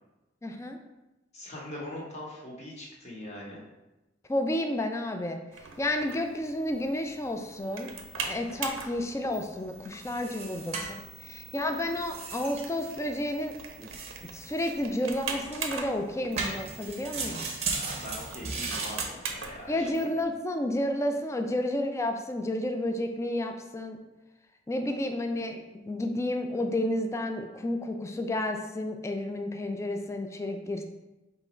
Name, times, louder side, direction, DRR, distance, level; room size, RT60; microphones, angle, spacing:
voice 1, 0.4-0.8 4.3-13.9 14.3-17.5 19.7-24.0 24.7-30.8, left 1 dB, 15° left, 5 dB, 0.3 m, -31 dB
voice 2, 1.3-3.6 17.8-20.1, left 1 dB, 35° left, -3 dB, 1.0 m, -42 dB
sound 1, 5.5-20.2, right 5 dB, 85° right, 0.6 m, -42 dB
sound 2, 8.5-19.1, right 3 dB, 35° right, 0.6 m, -38 dB
3.6 x 2.9 x 4.2 m, 1.0 s
head